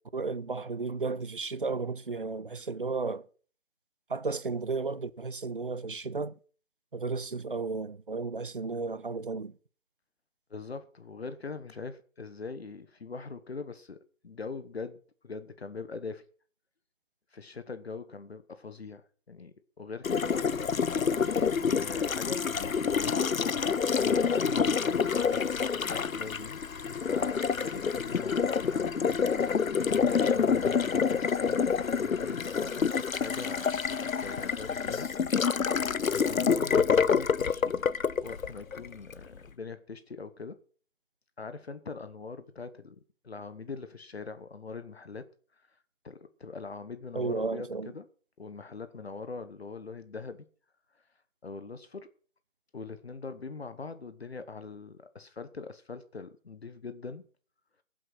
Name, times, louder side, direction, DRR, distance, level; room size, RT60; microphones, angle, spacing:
voice 1, 0.1-3.2 4.1-6.3 6.9-9.5 47.1-47.9, right 4 dB, 40° right, 0.6 m, -33 dB
voice 2, 10.5-16.2 17.3-20.7 21.8-23.3 24.0-26.6 27.0-29.0 30.0-31.6 31.9-33.8 34.2-35.1 36.1-37.7 38.2-40.6 41.4-45.2 45.5-45.8 46.0-48.1 48.4-50.4 50.9-51.0 51.4-52.1 52.7-57.3, left 4 dB, 50° left, 1.2 m, -42 dB
Water tap faucet, 20.0-39.2, left 6 dB, 80° left, 0.7 m, -27 dB
16.0 x 7.7 x 5.9 m
figure-of-eight pair, 155°, 40 cm